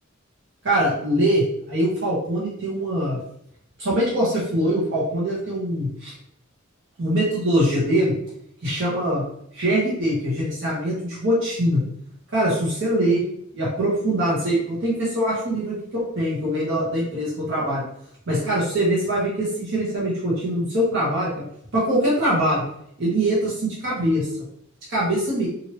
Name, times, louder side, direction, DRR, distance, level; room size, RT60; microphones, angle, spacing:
voice 1, 0.6-3.2 3.8-6.1 7.0-8.1 8.6-9.2 9.5-11.8 12.3-13.2 13.5-17.8 18.3-21.3 21.7-22.7 23.0-24.3 24.9-25.5, right 1 dB, 65° right, -7 dB, 1.0 m, -23 dB
3.0 x 2.6 x 3.0 m, 0.73 s
head